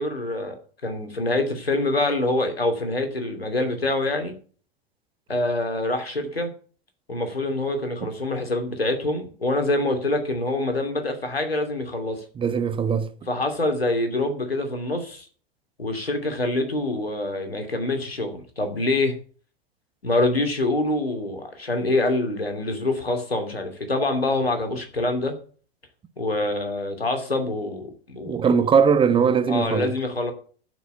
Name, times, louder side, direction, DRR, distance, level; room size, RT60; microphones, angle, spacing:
voice 1, 0.0-4.3 5.3-6.5 7.1-12.2 13.3-15.2 15.8-19.1 20.0-25.3 26.2-28.4 29.5-30.3, left 2 dB, 80° left, 2.7 m, -25 dB
voice 2, 12.4-13.1 28.3-29.9, right 6 dB, 15° right, 0.8 m, -20 dB
12.5 x 6.2 x 8.1 m
figure-of-eight pair, 90°, 30 cm